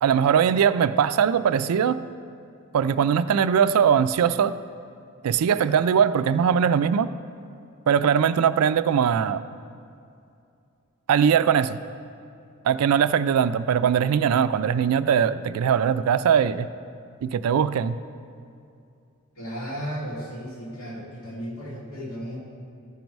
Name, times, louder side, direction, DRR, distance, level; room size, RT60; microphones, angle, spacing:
voice 1, 0.0-2.0 2.7-4.6 5.2-7.1 7.9-9.4 11.1-11.8 12.6-16.7 17.2-18.0, right 7 dB, 85° right, 13 dB, 0.3 m, -21 dB
voice 2, 19.4-22.4, equal, 70° left, -6 dB, 2.6 m, -34 dB
14.5 x 5.3 x 4.6 m, 2.5 s
head